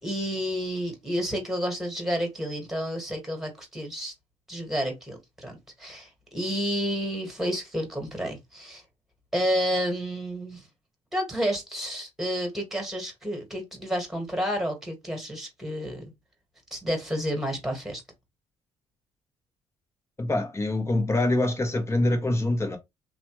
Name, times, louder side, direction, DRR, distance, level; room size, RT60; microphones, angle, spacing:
voice 1, 0.0-4.1 4.5-8.8 9.3-10.7 11.1-16.0 16.7-18.0, equal, 5° right, 1.6 m, -30 dB
voice 2, 20.2-22.8, left 2 dB, 20° left, 1.0 m, -25 dB
2.9 x 2.3 x 3.0 m
cardioid pair, 80°, 12 cm